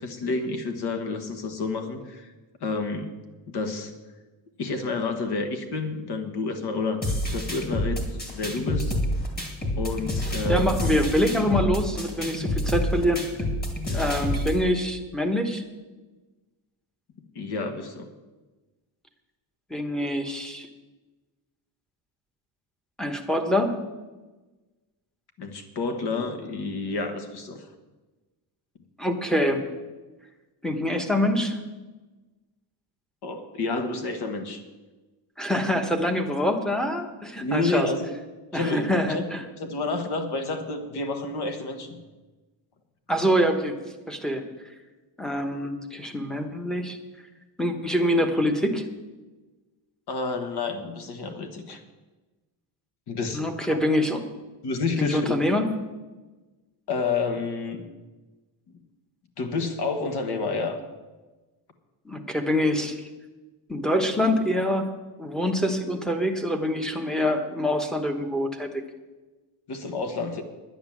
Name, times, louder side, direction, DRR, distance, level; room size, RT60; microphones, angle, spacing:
voice 1, 0.0-2.3 2.6-3.1 3.5-3.9 4.6-9.0 9.8-10.8 13.8-14.1 17.3-18.1 25.4-27.6 33.2-34.6 37.4-38.1 38.5-39.2 39.6-42.0 50.1-51.8 53.1-53.4 53.7-53.8 54.6-55.2 56.9-57.9 59.4-60.8 69.7-70.4, left 3 dB, 55° left, 6 dB, 1.5 m, -29 dB
sound 1, 7.0-14.6, left 1 dB, 20° left, 2.0 m, -28 dB
voice 2, 10.5-13.2 13.9-15.6 19.7-20.7 23.0-23.8 29.0-29.6 30.6-31.6 35.4-37.9 38.5-39.4 43.1-43.8 44.1-44.4 45.2-47.0 47.6-48.8 53.3-54.2 55.0-55.7 62.0-63.0 63.7-64.9 65.2-68.7, equal, ahead, 3 dB, 1.1 m, -25 dB
10.0 x 10.0 x 7.4 m, 1.2 s
cardioid pair, 165°, 48 cm